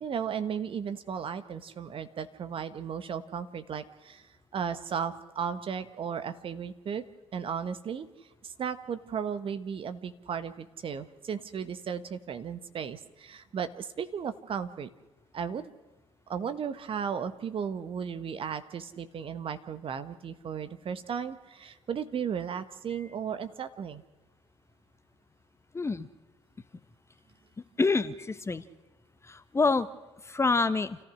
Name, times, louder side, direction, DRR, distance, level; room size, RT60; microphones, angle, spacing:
voice 1, 0.0-7.0 7.3-8.1 8.4-14.9 15.3-15.6 16.3-24.0, right 7 dB, 40° right, 10 dB, 1.4 m, -35 dB
voice 2, 25.7-26.1 27.8-28.6 29.2-29.9 30.2-31.0, left 3 dB, 20° left, 13 dB, 1.0 m, -27 dB
29.0 x 14.5 x 6.4 m, 1.1 s
figure-of-eight pair, 55°, 14 cm